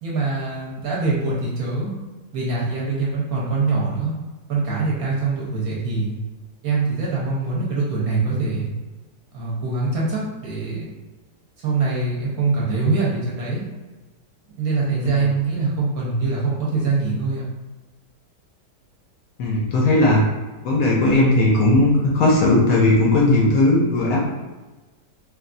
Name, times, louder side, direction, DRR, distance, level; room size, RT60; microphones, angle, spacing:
voice 1, 0.0-1.9 2.3-4.1 4.5-6.1 6.6-8.7 9.3-10.9 11.6-13.6 14.6-17.4, right 3 dB, 65° right, -5 dB, 1.0 m, -23 dB
voice 2, 19.4-20.2 20.6-24.3, left 2 dB, 70° left, -3 dB, 0.8 m, -17 dB
3.3 x 2.3 x 2.5 m, 1.2 s
omnidirectional pair, 1.9 m